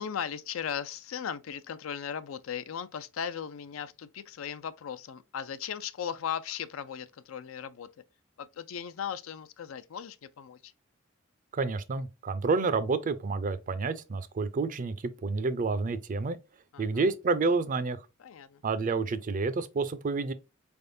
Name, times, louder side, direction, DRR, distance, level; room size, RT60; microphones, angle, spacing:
voice 1, 0.0-7.9 8.4-10.7 16.7-16.8 18.2-18.6, left 8 dB, 85° left, 0.4 m, -37 dB
voice 2, 11.5-14.9 15.2-16.4 16.8-18.0 18.6-20.3, right 4 dB, 40° right, 0.4 m, -29 dB
4.2 x 3.5 x 2.6 m
head